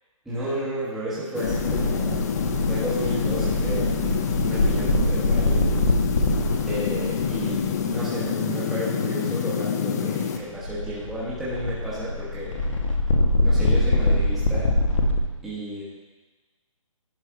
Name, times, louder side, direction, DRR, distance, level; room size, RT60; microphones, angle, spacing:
voice 1, 0.2-2.3 2.6-4.0 4.4-5.7 6.7-12.6 13.4-14.8 15.4-15.8, right 1 dB, 5° right, -11 dB, 1.2 m, -32 dB
sound 1, 1.3-10.4, left 7 dB, 30° left, 0.5 m, -27 dB
sound 2, 1.4-8.1 10.4-15.2, left 1 dB, 60° left, 1.3 m, -24 dB
11.0 x 4.5 x 4.5 m, 1.2 s
hypercardioid pair, 155°, 17 cm